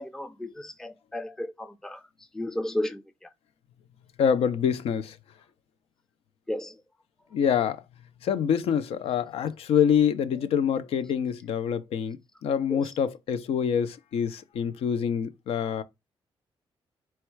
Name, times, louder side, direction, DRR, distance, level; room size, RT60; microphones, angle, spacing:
voice 1, 0.0-1.5 1.8-2.0 2.4-3.0 6.5-6.7 12.7-12.8, left 1 dB, 5° left, 0.4 m, -32 dB
voice 2, 4.2-5.1 7.3-7.8 8.2-12.2 12.4-15.8, left 8 dB, 80° left, 0.5 m, -26 dB
4.3 x 2.3 x 4.4 m
wide cardioid pair, 160°, 10 cm